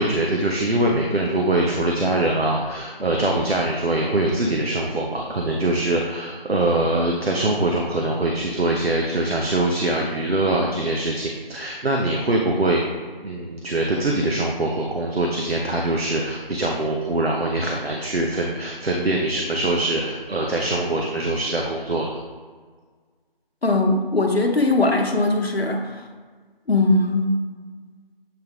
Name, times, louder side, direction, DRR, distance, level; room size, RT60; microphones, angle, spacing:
voice 1, 0.0-12.8 13.2-22.1, right 2 dB, 85° right, 0 dB, 0.9 m, -23 dB
voice 2, 23.6-25.9 26.7-27.4, left 2 dB, 85° left, 2 dB, 1.0 m, -20 dB
7.9 x 3.5 x 3.5 m, 1.5 s
figure-of-eight pair, 180°, 30 cm